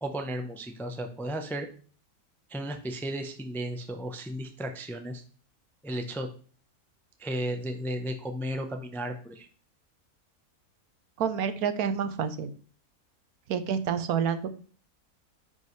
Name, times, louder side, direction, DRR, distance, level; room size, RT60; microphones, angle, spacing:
voice 1, 0.0-1.7 2.5-5.2 5.8-6.3 7.2-9.5, right 1 dB, ahead, 5 dB, 0.5 m, -34 dB
voice 2, 11.2-12.5 13.5-14.5, right 7 dB, 70° right, 11 dB, 1.2 m, -28 dB
9.5 x 5.4 x 3.2 m, 0.42 s
omnidirectional pair, 1.6 m